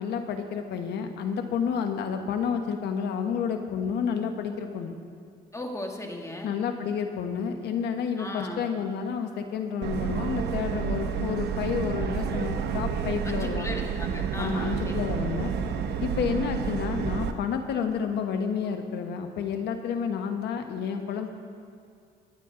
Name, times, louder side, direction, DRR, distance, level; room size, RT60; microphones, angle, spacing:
voice 1, 0.0-5.0 6.4-13.7 14.4-15.5 16.0-21.3, left 6 dB, 85° left, 6 dB, 1.2 m, -30 dB
voice 2, 5.5-6.5 8.2-8.6 13.2-15.2, left 1 dB, 15° left, 1 dB, 1.9 m, -37 dB
Subway metro underground, 9.8-17.3, right 7 dB, 75° right, 0.9 m, -30 dB
23.0 x 9.5 x 3.8 m, 2.3 s
cardioid pair, 95°, 17 cm